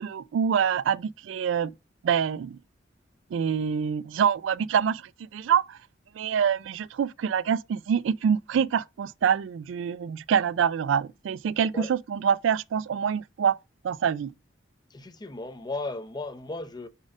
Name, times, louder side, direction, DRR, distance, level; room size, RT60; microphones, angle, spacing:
voice 1, 0.0-1.7 2.0-2.6 3.3-5.0 5.3-5.8 6.2-13.6 13.8-14.3, right 7 dB, 80° right, 0.3 m, -25 dB
voice 2, 14.9-16.9, left 2 dB, 20° left, 0.6 m, -35 dB
4.8 x 4.4 x 4.8 m
head